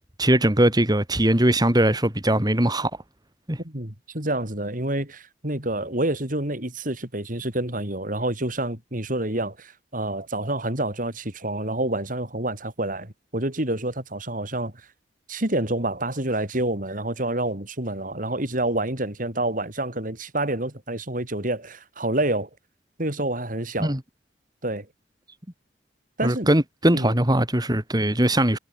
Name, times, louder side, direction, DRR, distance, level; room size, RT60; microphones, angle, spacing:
voice 1, 0.2-2.9 3.5-3.6 23.8-24.0 26.2-28.6, right 1 dB, 20° right, 4.1 m, -20 dB
voice 2, 3.6-14.7 15.3-22.5 23.0-24.0 24.6-24.9 26.2-26.5 26.9-27.1, right 1 dB, 50° right, 4.7 m, -28 dB
head